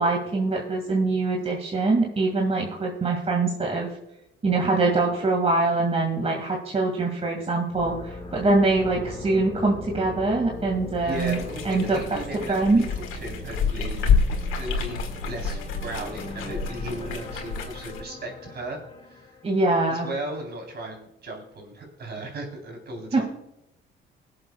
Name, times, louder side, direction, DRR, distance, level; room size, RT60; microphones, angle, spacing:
voice 1, 0.0-3.9 4.4-11.4 11.6-12.0 12.5-12.8 19.4-20.1 23.1-23.2, right 3 dB, 30° right, 0 dB, 2.2 m, -23 dB
sound 1, 7.7-19.7, left 2 dB, 30° left, 3.1 m, -40 dB
voice 2, 11.0-14.1 14.6-19.3 19.9-23.2, right 1 dB, 55° right, 1 dB, 3.9 m, -36 dB
sound 2, 11.1-18.0, left 5 dB, 90° left, 1.8 m, -28 dB
22.5 x 7.7 x 2.4 m, 0.86 s
cardioid pair, 90°, 20 cm